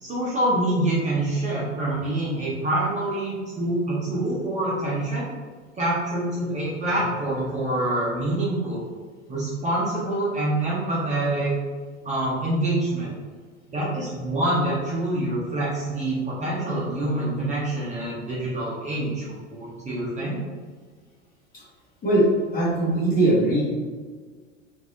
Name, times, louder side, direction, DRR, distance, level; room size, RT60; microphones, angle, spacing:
voice 1, 0.0-5.2 5.8-8.8 9.3-11.5 12.0-13.1 13.7-20.4, right 1 dB, 20° right, -7 dB, 1.0 m, -26 dB
voice 2, 22.5-23.6, right 1 dB, 25° left, -6 dB, 1.4 m, -20 dB
4.5 x 2.8 x 2.8 m, 1.5 s
figure-of-eight pair, 85°, 37 cm